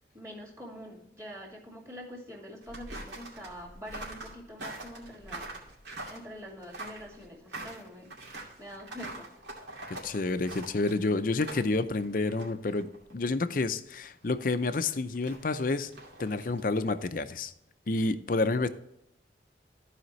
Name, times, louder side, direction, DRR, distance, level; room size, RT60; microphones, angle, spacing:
voice 1, 0.1-5.5 6.1-8.1 8.6-9.3, equal, 15° right, -2 dB, 2.2 m, -45 dB
sound 1, 2.6-13.1 13.4-13.5 14.5-16.7, right 2 dB, 80° right, 2.5 m, -44 dB
voice 2, 9.9-15.9 16.2-17.5 17.9-18.7, left 3 dB, 50° left, 11 dB, 0.5 m, -29 dB
14.5 x 5.0 x 3.1 m, 0.82 s
head